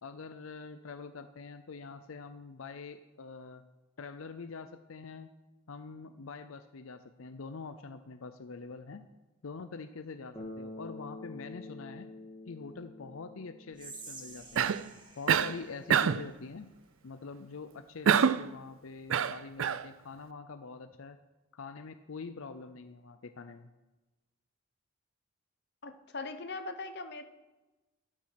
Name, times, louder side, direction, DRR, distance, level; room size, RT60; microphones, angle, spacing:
voice 1, 0.0-3.6 4.0-5.3 5.7-9.1 9.4-12.1 12.5-14.7 15.2-16.7 17.0-21.2 21.5-23.7, left 4 dB, 80° left, 10 dB, 0.6 m, -45 dB
Bass guitar, 10.3-14.6, left 2 dB, 20° left, 2.6 m, -47 dB
Whispering, 13.7-16.9, right 3 dB, 20° right, 1.7 m, -51 dB
Cough, 14.6-14.9 15.3-15.6 15.9-16.3 18.1-18.5 19.1-19.8, right 7 dB, 75° right, 0.4 m, -26 dB
voice 2, 25.8-27.2, left 3 dB, 50° left, 8 dB, 1.0 m, -40 dB
13.0 x 9.1 x 5.8 m, 1.1 s
head